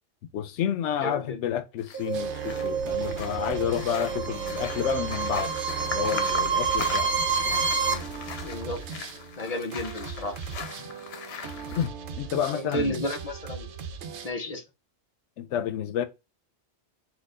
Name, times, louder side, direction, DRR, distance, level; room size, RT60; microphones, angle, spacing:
voice 1, 0.3-7.1 11.8-11.9 12.2-13.1 15.4-16.0, left 10 dB, 90° left, 0.9 m, -30 dB
voice 2, 1.0-1.4 8.4-8.8 9.4-10.4 12.5-13.7 14.2-14.6, left 1 dB, 40° left, 0.6 m, -32 dB
sound 1, 1.8-11.9, left 6 dB, 65° left, 1.0 m, -40 dB
sound 2, 1.9-7.9, right 5 dB, 55° right, 0.8 m, -28 dB
sound 3, 2.1-14.3, right 6 dB, 80° right, 0.9 m, -38 dB
4.4 x 2.5 x 4.7 m
omnidirectional pair, 1.2 m